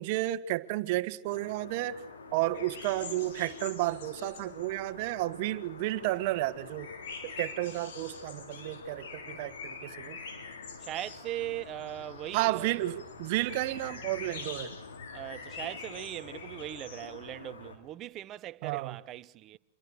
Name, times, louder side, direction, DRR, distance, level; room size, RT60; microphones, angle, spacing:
voice 1, 0.0-2.0 2.3-6.9 7.2-10.2 12.3-14.7 18.6-19.0, right 17 dB, 50° right, 1.5 m, -32 dB
sound 1, 1.2-17.8, left 4 dB, 90° left, 5.0 m, -48 dB
sound 2, 2.5-5.8 6.0-17.3, left 5 dB, 70° left, 7.0 m, -46 dB
voice 2, 10.8-12.7 15.1-19.6, right 14 dB, 35° right, 1.0 m, -39 dB
28.5 x 22.5 x 6.5 m
hypercardioid pair, 125°, 0 cm